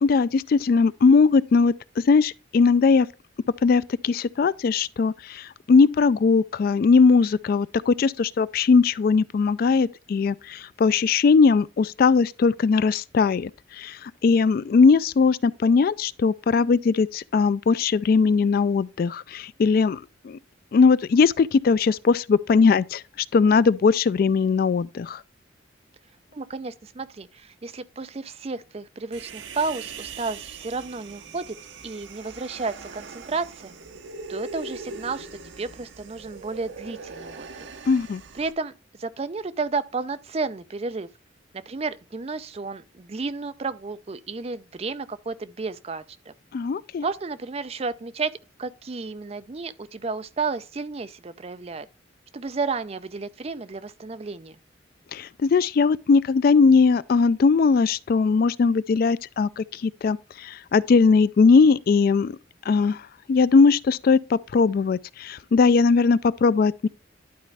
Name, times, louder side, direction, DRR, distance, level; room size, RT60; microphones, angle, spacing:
voice 1, 0.0-3.1 3.6-20.4 20.7-25.2 37.9-38.2 46.5-47.1 55.1-62.4 62.7-63.0 63.3-66.9, left 4 dB, 50° left, 0.3 m, -20 dB
voice 2, 26.3-31.6 31.8-33.7 34.3-35.3 35.6-37.7 38.3-38.7 39.0-41.1 41.7-46.3 47.0-48.3 48.6-51.9 52.3-54.6, right 4 dB, 35° right, 0.5 m, -32 dB
Human voice, 29.1-38.5, right 4 dB, 75° right, 0.8 m, -41 dB
11.5 x 4.3 x 3.4 m
head